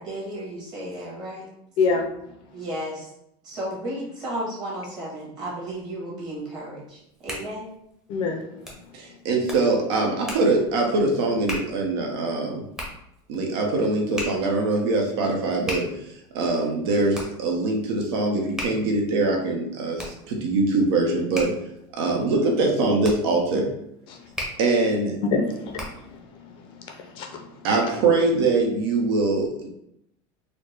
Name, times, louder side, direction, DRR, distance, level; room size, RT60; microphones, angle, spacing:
voice 1, 0.0-1.5 2.5-3.0 3.4-7.0 7.2-7.7, right 1 dB, 35° right, 1.3 m, -33 dB
voice 2, 1.8-2.1 8.1-8.5 24.1-24.3 25.3-27.7, left 4 dB, 40° left, 0.4 m, -27 dB
Hands, 6.9-26.2, left 1 dB, 5° right, 0.6 m, -39 dB
voice 3, 8.9-12.7 13.3-21.5 21.9-23.7 24.6-25.2 27.6-29.7, right 3 dB, 90° right, 0.8 m, -23 dB
4.1 x 2.1 x 3.2 m
cardioid pair, 170°, 13 cm